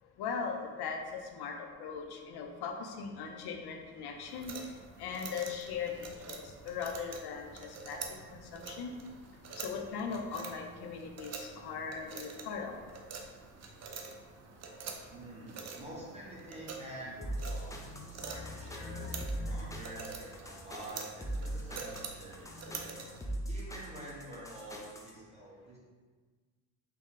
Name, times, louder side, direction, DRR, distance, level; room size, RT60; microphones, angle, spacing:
voice 1, 0.0-9.0 9.5-12.8 17.9-19.8 22.5-23.1, left 5 dB, 65° left, 3 dB, 0.7 m, -40 dB
sound 1, 4.3-23.2, right 5 dB, 40° right, 0.6 m, -47 dB
voice 2, 15.1-19.0 19.5-22.4 22.6-23.0 23.5-25.8, right 1 dB, 15° right, -6 dB, 1.2 m, -47 dB
sound 2, 17.2-25.1, right 1 dB, 10° left, 0.5 m, -40 dB
3.7 x 3.0 x 3.7 m, 1.4 s
supercardioid pair, 85°, 42 cm